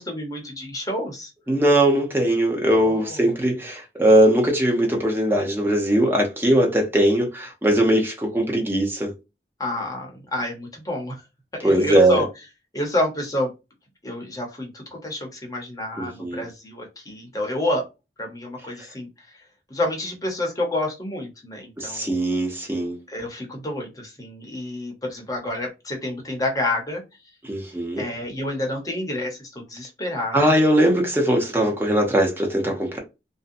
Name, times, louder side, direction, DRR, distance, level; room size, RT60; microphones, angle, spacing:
voice 1, 0.0-1.3 2.8-3.3 9.6-11.1 11.5-12.3 12.7-13.5 14.0-17.8 18.2-19.1 19.7-22.1 23.1-27.0 28.0-30.5, left 1 dB, 20° left, 0.8 m, -29 dB
voice 2, 1.5-9.1 11.6-12.2 16.0-16.4 21.8-23.0 27.5-28.0 30.3-33.0, right 1 dB, 15° right, 0.7 m, -20 dB
2.6 x 2.2 x 2.5 m
head